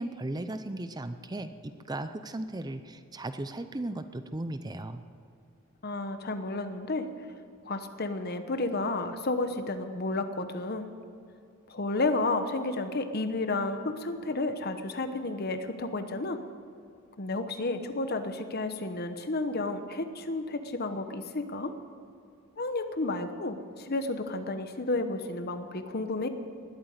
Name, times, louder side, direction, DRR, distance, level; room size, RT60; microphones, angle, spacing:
voice 1, 0.0-5.0, right 1 dB, 20° right, 10 dB, 0.5 m, -36 dB
voice 2, 5.8-7.1 7.6-10.9 11.7-16.4 17.2-21.7 22.6-26.3, left 2 dB, 45° left, 9 dB, 1.0 m, -31 dB
20.0 x 8.8 x 8.0 m, 2.5 s
head